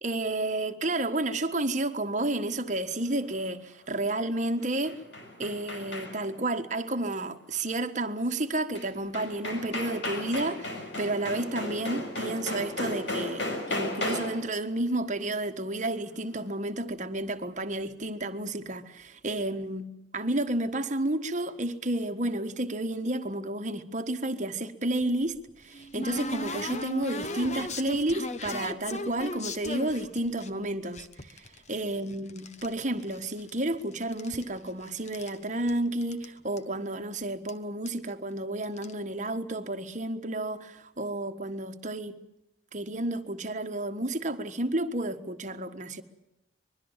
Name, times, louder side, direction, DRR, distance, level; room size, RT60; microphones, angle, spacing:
voice 1, 0.0-5.0 5.4-42.2 42.7-46.0, right 1 dB, 40° right, 1.5 m, -31 dB
sound 1, 4.6-6.4 8.7-8.8 9.1-14.5, left 1 dB, 70° left, 6.1 m, -35 dB
sound 2, 25.0-30.5 30.9-32.7 33.0-33.8 34.0-35.4 35.7-35.8 36.0-36.3 36.6-36.7 37.5-37.6 37.9-38.1 38.6-38.9, left 1 dB, 35° left, 1.3 m, -37 dB
25.0 x 22.0 x 7.4 m
head